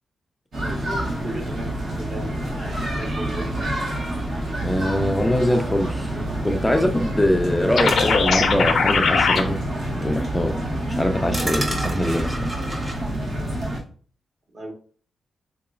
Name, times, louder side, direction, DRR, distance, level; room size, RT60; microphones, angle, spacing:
sound 1, 0.5-13.8, right 1 dB, 70° right, 1.3 m, -27 dB
voice 1, 1.2-2.3 2.9-3.7 14.5-14.7, right 1 dB, 50° right, 1 dB, 1.1 m, -35 dB
voice 2, 4.6-6.1 6.4-9.6 10.0-10.6 10.9-12.5, left 1 dB, 10° left, 4 dB, 0.3 m, -23 dB
sound 2, 7.8-9.4, left 5 dB, 70° left, 0.5 m, -19 dB
sound 3, 7.8-8.2 9.4-9.5 10.0-10.1 11.3-12.9, right 1 dB, 25° right, 1.0 m, -30 dB
3.7 x 2.8 x 2.4 m, 0.42 s
wide cardioid pair, 125°, 0 cm